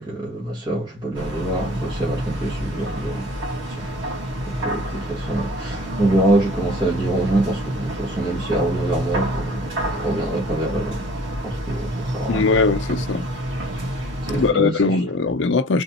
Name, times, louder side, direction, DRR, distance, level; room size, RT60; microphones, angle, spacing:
voice 1, 0.0-3.4 3.7-3.9 4.4-11.1 11.4-12.5 14.2-14.9, right 2 dB, 25° right, 1.5 m, -25 dB
sound 1, 1.1-14.5, right 1 dB, 80° right, 1.8 m, -28 dB
voice 2, 12.3-13.3 14.3-15.8, left 4 dB, 75° left, 0.6 m, -20 dB
3.6 x 3.0 x 2.9 m
head